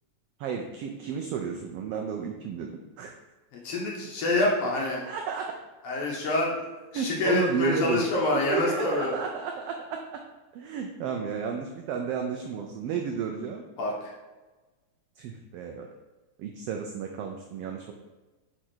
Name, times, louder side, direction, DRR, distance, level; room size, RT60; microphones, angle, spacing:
voice 1, 0.4-3.1 5.1-5.5 6.9-8.1 8.5-10.2 10.5-13.6 15.2-15.9 16.4-17.9, right 6 dB, 90° right, 3 dB, 1.3 m, -32 dB
voice 2, 3.5-5.0 5.8-6.6 6.9-9.1 13.8-14.1, left 2 dB, 65° left, -2 dB, 1.9 m, -26 dB
5.0 x 4.8 x 4.4 m, 1.2 s
omnidirectional pair, 3.3 m